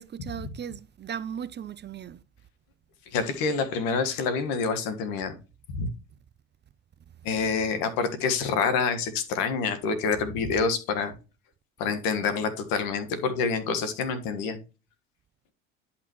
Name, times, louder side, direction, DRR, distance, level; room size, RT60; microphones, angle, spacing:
voice 1, 0.0-2.2, right 8 dB, 30° right, 0.5 m, -37 dB
voice 2, 3.1-5.4 5.7-5.9 7.2-11.1 11.8-14.6, left 5 dB, 75° left, 1.6 m, -27 dB
10.5 x 5.8 x 3.1 m
supercardioid pair, 80°, 35 cm